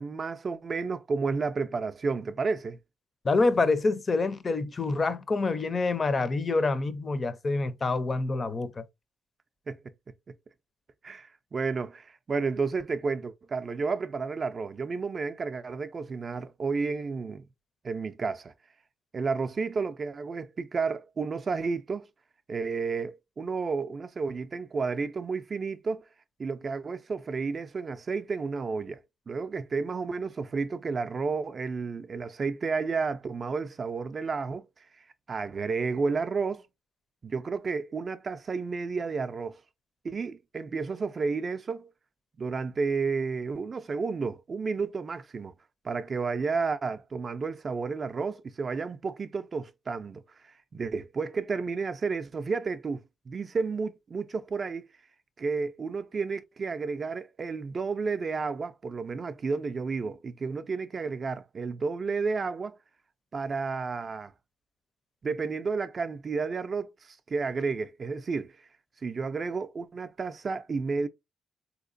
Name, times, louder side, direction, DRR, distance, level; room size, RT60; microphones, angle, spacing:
voice 1, 0.0-2.8 9.7-9.8 10.3-10.4 11.0-17.5 17.8-18.5 19.1-22.1 22.5-26.1 26.4-29.0 29.3-34.7 35.0-36.7 37.2-39.6 40.0-41.9 42.4-45.5 45.8-54.9 55.4-62.8 63.3-64.3 65.2-68.6 69.0-71.1, right 4 dB, 40° right, 0.3 m, -31 dB
voice 2, 3.2-8.8, left 3 dB, 35° left, 0.5 m, -26 dB
3.6 x 2.8 x 2.5 m
cardioid pair, 90°, 0 cm